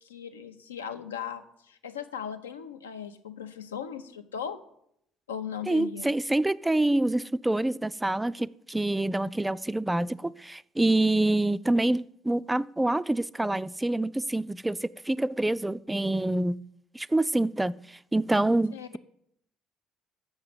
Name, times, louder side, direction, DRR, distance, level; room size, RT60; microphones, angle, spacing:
voice 1, 0.0-4.6 5.3-6.1 18.7-19.0, left 8 dB, 75° left, 0.6 m, -38 dB
voice 2, 5.7-16.6 16.9-19.0, right 2 dB, 10° right, 0.3 m, -26 dB
7.2 x 6.6 x 7.6 m
figure-of-eight pair, 50°, 0 cm